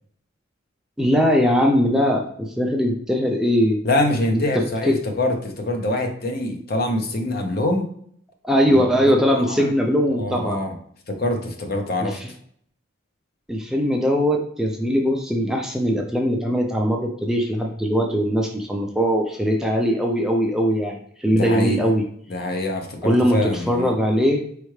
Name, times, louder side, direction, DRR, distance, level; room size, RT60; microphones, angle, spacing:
voice 1, 1.0-3.8 4.3-4.4 4.8-5.0 8.4-10.6 12.0-12.3 13.5-22.0 23.0-24.5, equal, 5° right, 1 dB, 0.4 m, -20 dB
voice 2, 3.8-7.9 8.7-8.8 9.3-9.7 10.1-10.7 11.1-12.2 21.3-21.9 22.3-23.9, left 1 dB, 50° left, 4 dB, 0.7 m, -24 dB
4.6 x 3.3 x 3.1 m, 0.63 s
head